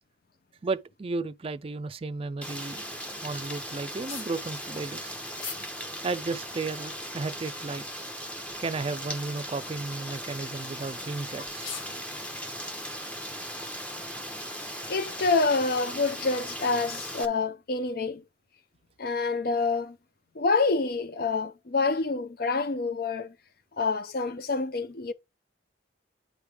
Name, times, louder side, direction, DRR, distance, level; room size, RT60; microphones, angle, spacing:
voice 1, 0.6-2.8 3.2-5.1 6.0-7.8 8.6-11.7, right 3 dB, 30° right, 0.4 m, -33 dB
Rain, 2.4-17.2, equal, 5° left, 0.7 m, -38 dB
sound 1, 4.1-4.3 5.4-5.7 6.2-6.3 7.1-7.7 8.5-8.7 9.1-9.2 9.8-10.1 11.0-11.1 11.5-12.0, left 6 dB, 85° left, 1.1 m, -40 dB
voice 2, 14.9-18.2 19.0-20.0 20.4-23.3 23.8-25.1, left 3 dB, 50° left, 0.6 m, -27 dB
9.3 x 3.3 x 4.9 m
head